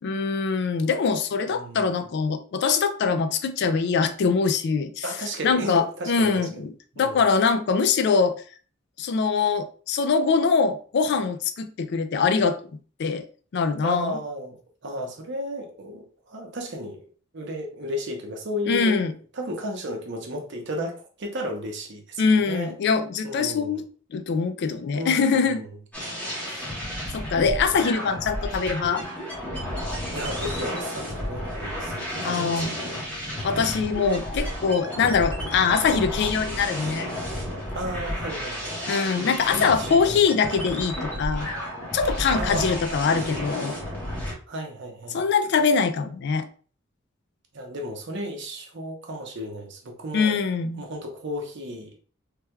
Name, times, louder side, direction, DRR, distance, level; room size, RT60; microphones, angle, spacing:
voice 1, 0.0-5.0 5.4-8.4 9.0-12.6 13.0-13.2 13.5-14.1 18.7-19.1 22.2-23.8 24.1-25.6 26.4-26.7 27.1-29.0 32.2-32.7 33.4-37.1 38.9-41.5 41.9-43.8 45.1-46.5 50.1-50.8, left 5 dB, 60° left, 0.3 m, -23 dB
voice 2, 1.5-2.0 5.0-6.5 6.9-7.2 13.8-14.6 14.8-17.0 17.3-19.1 19.3-22.7 23.2-23.8 24.9-25.7 30.1-32.6 37.7-38.8 39.1-39.2 39.5-40.2 42.3-43.0 44.5-45.2 47.5-50.4 50.8-52.0, equal, 65° right, 0.8 m, -33 dB
sound 1, 25.9-44.3, equal, 10° left, 1.1 m, -32 dB
3.3 x 3.2 x 2.2 m
head